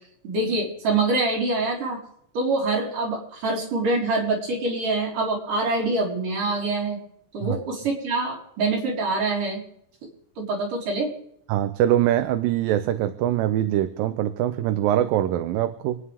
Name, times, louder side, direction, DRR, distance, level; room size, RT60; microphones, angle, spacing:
voice 1, 0.2-2.0 2.3-7.0 7.3-9.6 10.4-11.1, right 3 dB, 65° right, 5.9 m, -25 dB
voice 2, 11.5-16.0, right 12 dB, 85° right, 2.5 m, -23 dB
28.5 x 9.8 x 3.5 m
omnidirectional pair, 4.0 m